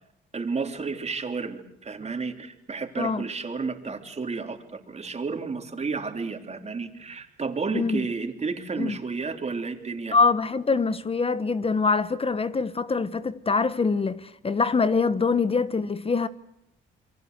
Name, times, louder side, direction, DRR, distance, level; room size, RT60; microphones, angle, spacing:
voice 1, 0.3-10.2, right 4 dB, 35° right, 3.4 m, -32 dB
voice 2, 7.7-8.0 8.8-8.9 10.1-16.3, left 4 dB, 30° left, 1.0 m, -24 dB
28.5 x 23.0 x 8.1 m
cardioid pair, 90°, 20 cm